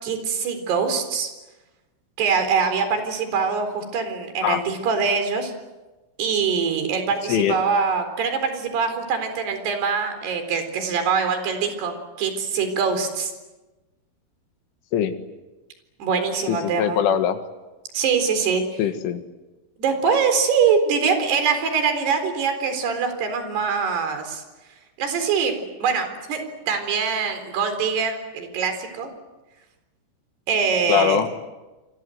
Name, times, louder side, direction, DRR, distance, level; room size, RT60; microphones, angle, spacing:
voice 1, 0.0-1.3 2.2-5.5 6.2-13.3 16.0-17.0 17.9-18.8 19.8-24.4 25.0-29.1 30.5-31.2, right 5 dB, 55° right, 7 dB, 5.8 m, -23 dB
voice 2, 16.5-17.4 18.8-19.2 30.9-31.3, left 9 dB, 70° left, 8 dB, 4.0 m, -21 dB
28.0 x 26.0 x 7.9 m, 1.1 s
omnidirectional pair, 5.9 m